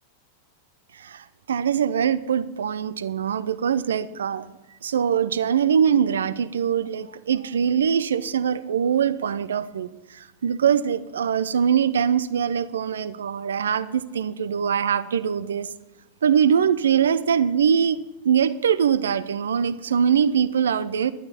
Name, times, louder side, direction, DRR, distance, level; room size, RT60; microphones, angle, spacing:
voice 1, 0.9-4.5 4.8-15.7 16.2-21.1, right 8 dB, 65° right, 16 dB, 0.6 m, -23 dB
11.5 x 11.5 x 4.4 m, 1.1 s
figure-of-eight pair, 90°, 0 cm